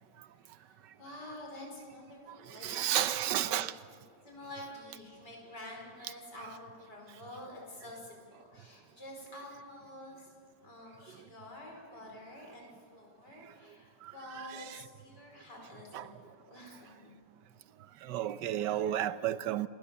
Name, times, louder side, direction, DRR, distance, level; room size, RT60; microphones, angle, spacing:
voice 1, 0.4-3.6 4.2-10.3 10.6-17.2, left 1 dB, 80° left, 5.6 m, -48 dB
voice 2, 2.6-3.7 15.9-16.0 18.1-19.7, right 11 dB, 85° right, 1.4 m, -31 dB
27.5 x 20.5 x 7.1 m
omnidirectional pair, 1.8 m